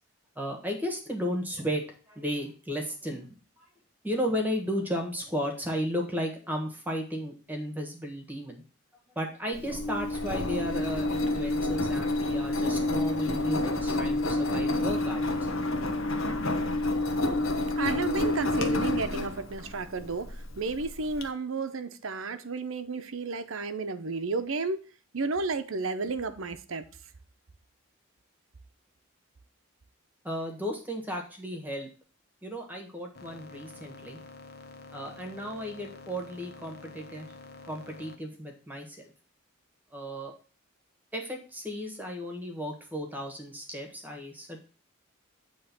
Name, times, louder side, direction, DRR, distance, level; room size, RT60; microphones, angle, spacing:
voice 1, 0.3-3.3 3.6-3.7 4.0-8.6 9.1-15.5 30.2-31.9 32.4-34.2 34.9-37.3 37.6-39.1 39.9-40.3 41.1-44.6, equal, 10° right, 1.3 m, -34 dB
Engine, 9.5-21.2, left 2 dB, 75° left, 1.1 m, -29 dB
voice 2, 17.8-24.8 25.1-26.8, right 3 dB, 75° right, 0.7 m, -32 dB
sound 1, 33.1-38.1, left 3 dB, 50° left, 0.8 m, -48 dB
8.7 x 3.2 x 6.0 m
head